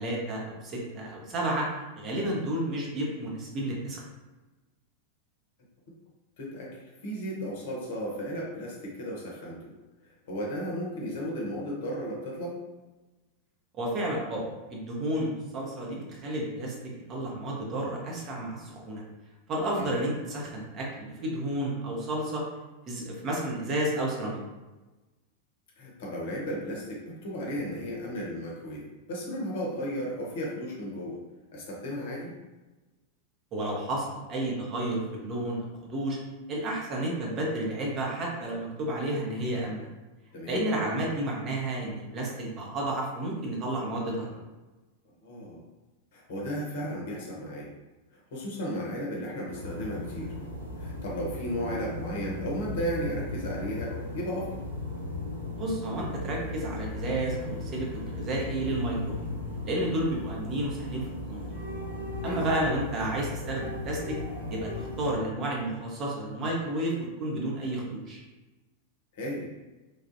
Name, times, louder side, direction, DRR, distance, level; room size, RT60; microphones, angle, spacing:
voice 1, 0.0-1.7 2.0-4.0 13.8-16.8 17.1-19.0 19.5-22.4 22.9-24.4 33.5-36.2 36.5-39.9 40.5-44.4 55.6-59.2 59.6-61.6 62.2-64.2 64.5-68.2, right 1 dB, 30° right, -3 dB, 0.8 m, -31 dB
voice 2, 6.4-9.7 10.0-12.6 19.7-19.9 25.8-31.2 31.5-32.4 40.3-40.6 45.2-45.6 46.1-47.7 48.1-50.4 50.8-54.6 62.2-62.4 69.1-69.5, equal, 55° left, -2 dB, 0.8 m, -35 dB
sound 1, 49.5-65.1, left 1 dB, 65° right, 1.0 m, -37 dB
3.3 x 2.4 x 2.6 m, 1.2 s
figure-of-eight pair, 90°, 0 cm